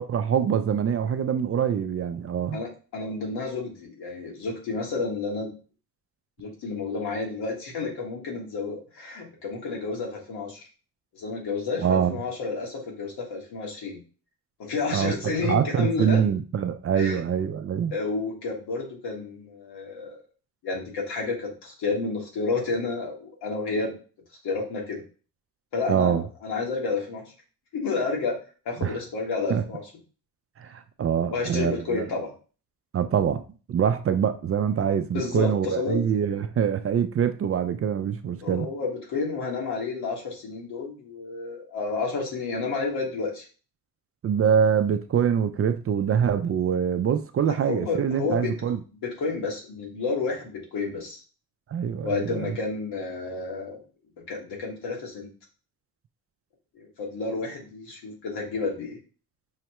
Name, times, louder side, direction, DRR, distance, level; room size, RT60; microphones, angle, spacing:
voice 1, 0.0-2.6 11.8-12.2 14.9-17.9 25.9-26.2 28.8-29.0 29.5-29.6 30.6-32.0 32.9-33.4 33.7-38.7 44.2-48.8 51.7-52.6, right 8 dB, 40° right, 0.4 m, -24 dB
voice 2, 2.5-5.5 6.4-10.6 11.1-14.0 14.6-16.2 16.9-17.3 17.9-20.2 20.6-24.0 24.4-25.0 25.7-27.2 27.7-28.4 28.6-29.8 31.3-32.3 35.1-36.0 38.4-43.4 47.4-51.2 52.0-53.8 54.3-55.3 56.7-59.0, left 4 dB, 85° left, 1.5 m, -30 dB
5.6 x 2.1 x 2.9 m
cardioid pair, 85°, 39 cm